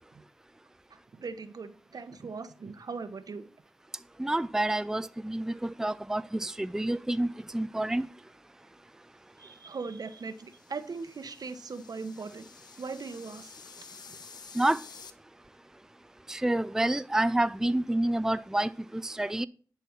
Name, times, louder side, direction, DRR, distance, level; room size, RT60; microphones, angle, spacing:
voice 1, 0.9-3.5 9.4-12.5 12.8-13.5 14.1-14.2, right 4 dB, 70° right, 1.0 m, -39 dB
voice 2, 4.2-7.3 7.5-8.1 14.6-14.8 16.3-18.7 19.0-19.5, right 1 dB, 10° right, 0.4 m, -28 dB
sound 1, 10.0-15.1, left 5 dB, 80° left, 0.9 m, -51 dB
10.5 x 4.6 x 7.2 m
cardioid pair, 55°, 7 cm